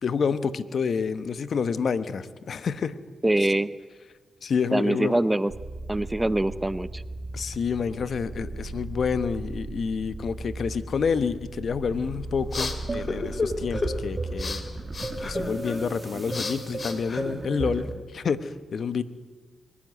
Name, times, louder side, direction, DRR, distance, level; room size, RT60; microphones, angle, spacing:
voice 1, 0.0-3.0 4.4-5.2 7.3-14.6 15.2-19.0, left 6 dB, 65° left, 13 dB, 1.0 m, -28 dB
voice 2, 3.2-3.7 4.7-5.5 5.9-7.0, right 1 dB, 15° right, 16 dB, 0.7 m, -24 dB
sound 1, 5.5-15.3, right 2 dB, 50° right, 2.9 m, -38 dB
sound 2, 12.0-17.9, left 3 dB, 50° left, 2.6 m, -34 dB
sound 3, 12.9-18.0, right 2 dB, 35° right, 2.4 m, -34 dB
22.5 x 12.5 x 9.4 m, 1.4 s
supercardioid pair, 50°, 0 cm